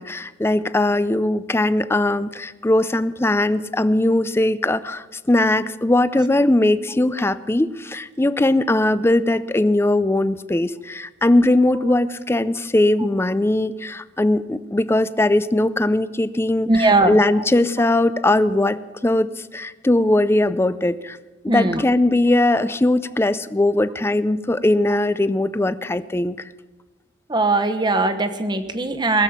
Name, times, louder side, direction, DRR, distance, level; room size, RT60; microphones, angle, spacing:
voice 1, 0.0-21.2 21.4-26.4, left 1 dB, 15° left, 14 dB, 0.4 m, -20 dB
voice 2, 16.6-17.2 21.5-21.8 27.3-29.2, right 2 dB, 25° right, 7 dB, 1.0 m, -19 dB
20.0 x 7.3 x 7.1 m, 1.2 s
head